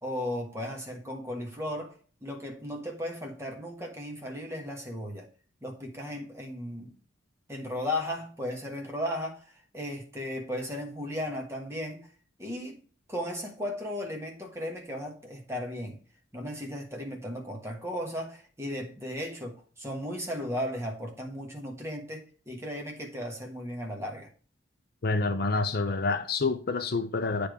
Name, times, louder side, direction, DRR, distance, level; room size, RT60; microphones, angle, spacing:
voice 1, 0.0-1.9 2.2-5.3 5.6-6.9 7.5-12.1 12.4-12.8 13.1-16.0 16.3-24.3, left 1 dB, 15° right, 1.4 m, -36 dB
voice 2, 25.0-27.5, left 3 dB, 50° left, 0.6 m, -28 dB
8.5 x 3.4 x 4.9 m
head